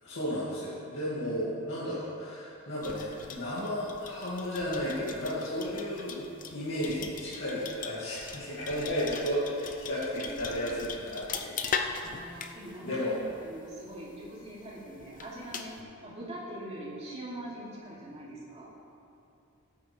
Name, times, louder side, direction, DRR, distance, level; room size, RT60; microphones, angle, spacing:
voice 1, 0.0-11.6 12.2-12.4 12.8-13.2, equal, 60° left, -10 dB, 2.4 m, -33 dB
voice 2, 1.2-1.5 10.1-10.5 12.0-18.7, right 1 dB, 30° right, -6 dB, 2.9 m, -43 dB
sound 1, 2.8-15.8, left 5 dB, 40° left, 0.6 m, -41 dB
17.0 x 9.2 x 3.5 m, 2.6 s
head